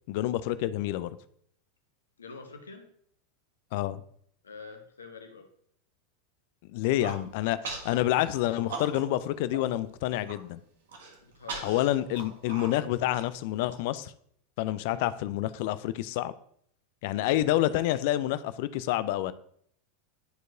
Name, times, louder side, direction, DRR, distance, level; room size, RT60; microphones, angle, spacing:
voice 1, 0.1-1.1 3.7-4.0 6.6-10.6 11.6-14.1 14.6-16.3 17.0-19.3, left 14 dB, 55° left, 15 dB, 0.4 m, -28 dB
voice 2, 2.2-2.9 4.4-5.5 11.2-11.7 14.9-15.1 17.1-17.3, left 4 dB, 80° left, 5 dB, 1.0 m, -46 dB
Human voice, 6.8-7.2 7.6-8.0 8.3-9.2 9.5-9.6 10.0-10.4 10.9-13.8, right 4 dB, 70° right, 1.4 m, -40 dB
11.0 x 4.6 x 2.6 m, 0.66 s
figure-of-eight pair, 90°, 0 cm